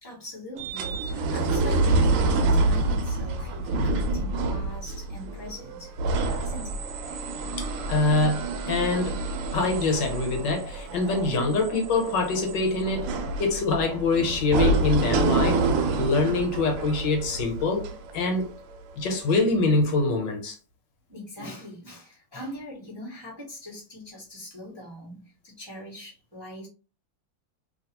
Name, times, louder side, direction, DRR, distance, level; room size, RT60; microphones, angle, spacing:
voice 1, 0.0-5.9 6.4-6.8 11.3-11.5 21.1-26.7, equal, 20° right, 0.7 m, -41 dB
sound 1, 0.6-18.7 19.3-19.4, right 2 dB, 80° right, 1.3 m, -27 dB
voice 2, 7.6-9.2 9.5-13.1 13.4-15.6 16.0-18.5 19.0-20.6, left 3 dB, 70° left, 1.4 m, -25 dB
2.8 x 2.8 x 2.8 m
omnidirectional pair, 2.1 m